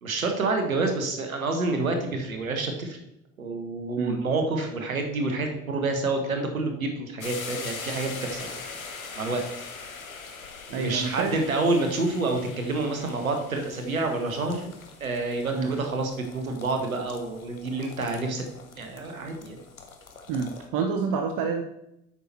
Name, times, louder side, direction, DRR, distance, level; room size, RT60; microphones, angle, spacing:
voice 1, 0.0-3.0 3.4-8.6 9.1-9.4 10.7-14.7 15.0-18.4 18.8-19.6, right 3 dB, 85° right, 4 dB, 1.3 m, -28 dB
sound 1, 7.2-20.7, left 5 dB, 85° left, 1.0 m, -42 dB
voice 2, 10.7-11.3 15.5-15.7 20.3-21.6, right 5 dB, 50° right, 5 dB, 0.9 m, -28 dB
8.5 x 5.9 x 4.4 m, 0.84 s
figure-of-eight pair, 60°, 41 cm